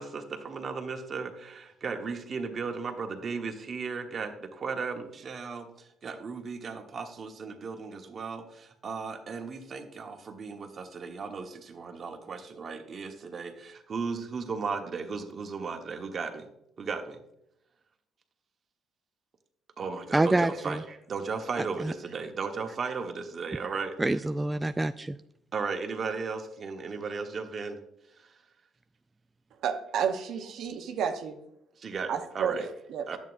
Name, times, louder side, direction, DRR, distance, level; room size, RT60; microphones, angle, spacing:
voice 1, 0.0-16.5 16.8-17.2 19.8-24.0 25.5-27.8 28.1-28.3 31.8-32.7 33.1-33.2, right 5 dB, 50° right, 1.3 m, -36 dB
voice 2, 20.1-20.8 21.8-21.9 24.0-25.2, right 2 dB, 15° right, 0.3 m, -26 dB
voice 3, 29.6-31.4 32.1-33.2, right 7 dB, 70° right, 0.8 m, -31 dB
10.5 x 8.2 x 2.6 m
supercardioid pair, 60°, 0 cm